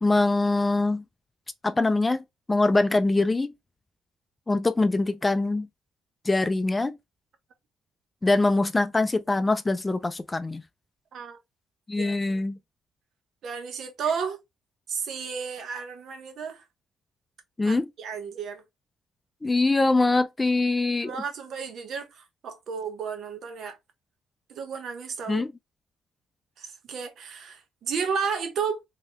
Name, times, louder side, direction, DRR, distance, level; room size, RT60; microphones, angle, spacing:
voice 1, 0.0-1.0 1.6-2.2 2.5-3.5 4.5-5.7 6.3-7.0 8.2-10.6 11.9-12.6 17.6-17.9 19.4-21.1 25.3-25.5, left 2 dB, 20° left, 0.4 m, -23 dB
voice 2, 12.0-12.4 13.4-14.4 14.9-16.6 17.6-18.6 21.0-23.8 24.5-25.4 26.6-28.8, right 6 dB, 65° right, 1.0 m, -33 dB
3.2 x 2.9 x 3.1 m
cardioid pair, 90°, 0 cm